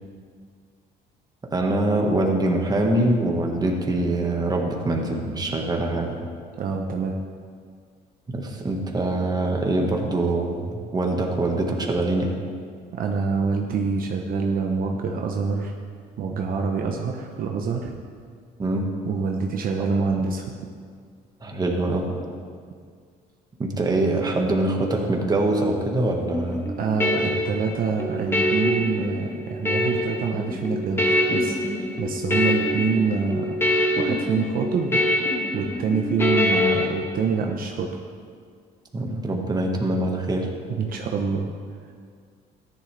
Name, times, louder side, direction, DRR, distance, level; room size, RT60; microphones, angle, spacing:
voice 1, 1.5-6.2 8.3-12.4 18.6-18.8 19.7-19.9 21.4-22.1 23.6-26.6 38.9-40.5, right 2 dB, 25° right, 1 dB, 1.6 m, -24 dB
voice 2, 6.6-7.2 12.9-15.7 16.2-17.9 19.1-20.5 26.8-31.6 32.0-33.5 34.0-37.9 40.8-41.5, right 5 dB, 60° right, 2 dB, 0.9 m, -26 dB
sound 1, 26.3-36.9, left 1 dB, 15° left, 1.4 m, -25 dB
13.5 x 10.5 x 3.4 m, 2.1 s
cardioid pair, 110°, 17 cm